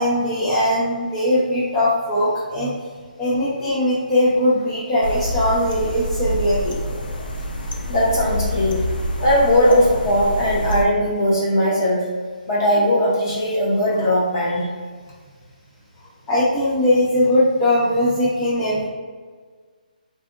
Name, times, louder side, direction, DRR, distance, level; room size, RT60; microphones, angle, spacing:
voice 1, 0.0-2.7 3.2-6.8 16.3-18.9, left 1 dB, 10° left, -11 dB, 0.3 m, -20 dB
sound 1, 5.0-10.9, equal, 85° left, 0.5 m, -27 dB
voice 2, 7.9-8.8 9.2-12.0 12.5-14.7, equal, 25° left, -4 dB, 0.7 m, -19 dB
3.5 x 2.6 x 2.4 m, 1.5 s
hypercardioid pair, 175°, 5 cm